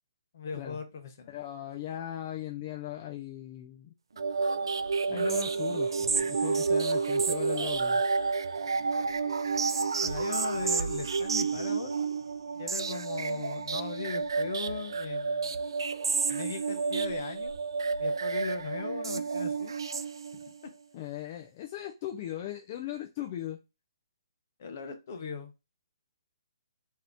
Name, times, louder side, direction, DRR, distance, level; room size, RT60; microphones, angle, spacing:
voice 1, 0.3-1.3 10.0-12.0 12.6-15.6 16.3-17.6 18.0-19.7 20.3-20.4 24.6-25.5, left 5 dB, 35° left, 6 dB, 0.7 m, -39 dB
voice 2, 1.3-3.9 5.1-8.0 20.9-23.6, left 12 dB, 20° left, 1 dB, 0.3 m, -38 dB
sound 1, 4.2-20.6, right 4 dB, 80° right, 0.4 m, -30 dB
3.7 x 2.7 x 3.4 m, 0.27 s
hypercardioid pair, 175°, 2 cm